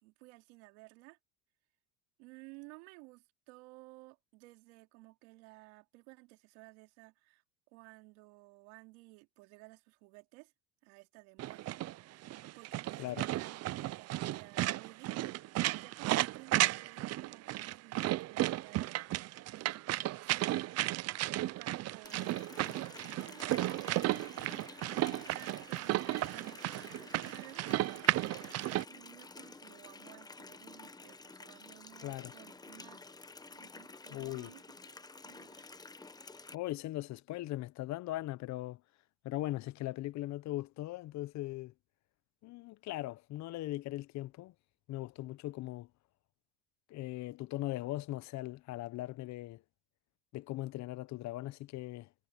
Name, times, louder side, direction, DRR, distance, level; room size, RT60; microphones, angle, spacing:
voice 1, 0.0-1.2 2.2-7.4 7.7-10.5 10.8-11.7 12.1-12.3 12.6-15.1 15.7-20.3 21.4-24.4 25.1-28.4 28.9-33.0 33.5-34.6 35.2-35.7, right 25 dB, 85° right, 3.4 m, -56 dB
sound 1, 11.4-28.8, right 16 dB, 50° right, 0.6 m, -34 dB
Water tap faucet, 22.0-36.5, left 3 dB, 10° left, 1.0 m, -51 dB
voice 2, 32.0-32.3 34.1-34.5 36.5-38.8 39.2-41.7 42.4-44.5 44.9-45.9 46.9-49.6 50.3-52.1, left 16 dB, 55° left, 0.8 m, -39 dB
supercardioid pair, 105°, 33 cm